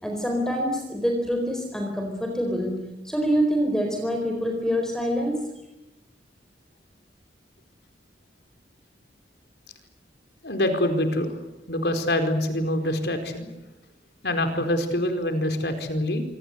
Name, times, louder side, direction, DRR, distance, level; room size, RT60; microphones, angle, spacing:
voice 1, 0.0-5.5, equal, 5° left, 2 dB, 4.3 m, -26 dB
voice 2, 10.4-11.4 11.7-13.5 14.2-16.2, left 1 dB, 70° left, 6 dB, 4.6 m, -25 dB
26.0 x 25.5 x 8.2 m, 0.92 s
head